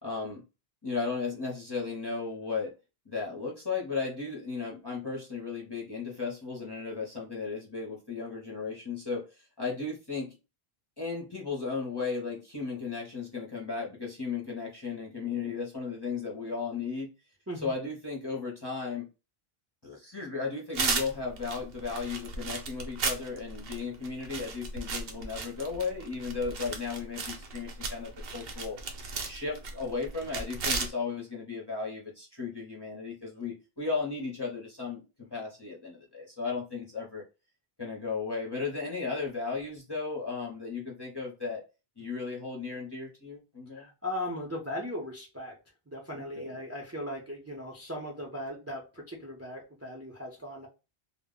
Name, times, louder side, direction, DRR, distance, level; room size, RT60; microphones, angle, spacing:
voice 1, 0.0-0.4 0.8-2.7 3.1-10.4 11.0-17.1 17.6-19.1 19.8-28.8 29.3-35.0 35.3-37.2 37.8-41.6 42.0-43.9 46.1-46.5, left 4 dB, 30° left, -4 dB, 0.6 m, -35 dB
sound 1, 20.7-30.9, right 4 dB, 70° right, 0.8 m, -35 dB
voice 2, 43.7-45.5 45.9-50.7, left 1 dB, 20° right, -1 dB, 0.5 m, -38 dB
2.1 x 2.0 x 3.6 m, 0.29 s
omnidirectional pair, 1.0 m